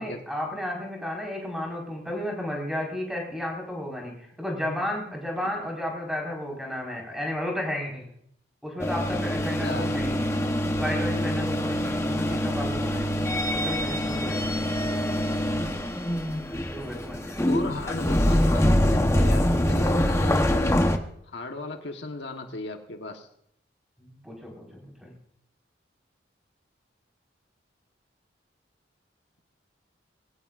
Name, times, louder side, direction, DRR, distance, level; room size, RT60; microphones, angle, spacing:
voice 1, 0.0-8.1 8.6-10.2 10.8-13.1 13.5-14.4 16.4-17.7 24.0-25.1, left 1 dB, ahead, -1 dB, 4.9 m, -33 dB
sound 1, 8.8-21.0, left 1 dB, 15° left, 1.0 m, -25 dB
voice 2, 9.6-10.0 17.5-20.8 21.3-23.3, left 2 dB, 70° left, 4 dB, 1.3 m, -35 dB
22.0 x 17.0 x 2.5 m, 0.69 s
head